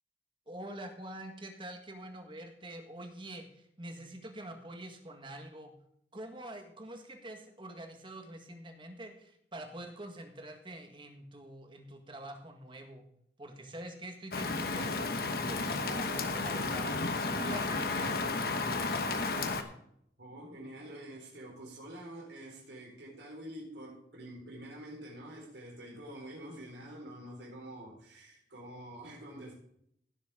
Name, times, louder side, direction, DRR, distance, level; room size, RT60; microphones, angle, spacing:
voice 1, 0.5-5.7 6.1-13.1 13.4-15.2 15.5-17.0 17.3-18.1, right 1 dB, 30° right, 5 dB, 1.7 m, -45 dB
Rain, 14.3-19.6, left 3 dB, 55° left, 1.2 m, -32 dB
voice 2, 20.2-29.6, right 1 dB, 85° right, -2 dB, 4.3 m, -47 dB
16.5 x 7.6 x 3.8 m, 0.71 s
head